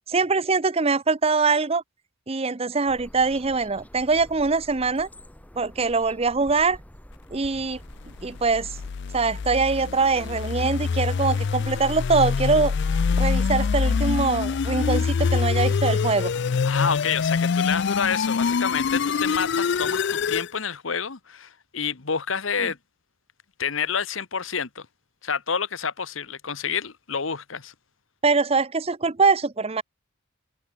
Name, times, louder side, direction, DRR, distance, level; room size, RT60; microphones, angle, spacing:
voice 1, 0.1-1.8 2.3-5.1 5.6-6.8 7.3-7.8 8.2-8.7 9.1-12.7 13.1-16.3 28.2-29.8, right 4 dB, 30° right, 0.7 m, -23 dB
sound 1, 2.9-8.9, equal, 5° left, 3.1 m, -47 dB
sound 2, 8.3-20.5, left 5 dB, 55° left, 0.4 m, -25 dB
voice 2, 16.6-22.8 23.6-24.9 25.2-27.7, left 6 dB, 70° left, 1.3 m, -28 dB
head